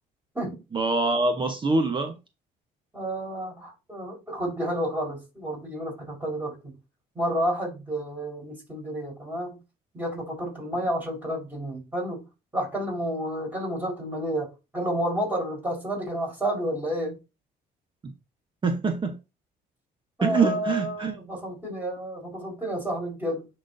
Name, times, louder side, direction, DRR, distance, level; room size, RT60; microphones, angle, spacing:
voice 1, 0.7-2.1 18.6-19.2 20.2-21.2, right 3 dB, 30° right, 0.9 m, -24 dB
voice 2, 2.9-6.8 7.1-9.6 9.9-12.2 12.5-17.2 20.2-23.5, equal, 10° right, 4.3 m, -30 dB
10.0 x 4.1 x 2.6 m
cardioid pair, 110°, 17 cm